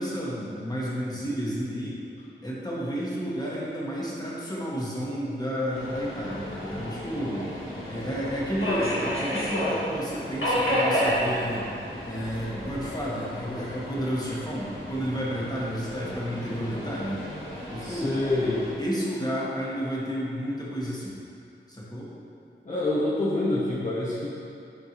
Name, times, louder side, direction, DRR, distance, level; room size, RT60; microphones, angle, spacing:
voice 1, 0.0-2.0 2.4-7.5 7.9-11.7 12.0-17.2 17.7-18.2 18.8-21.2 21.7-22.1, equal, 20° left, -6 dB, 1.4 m, -31 dB
Subway metro underground, 5.7-18.7, equal, 85° left, 1.5 m, -32 dB
voice 2, 17.8-18.6 22.6-24.3, left 2 dB, 40° left, -9 dB, 1.0 m, -26 dB
9.8 x 4.5 x 3.1 m, 2.6 s
wide cardioid pair, 75°, 20 cm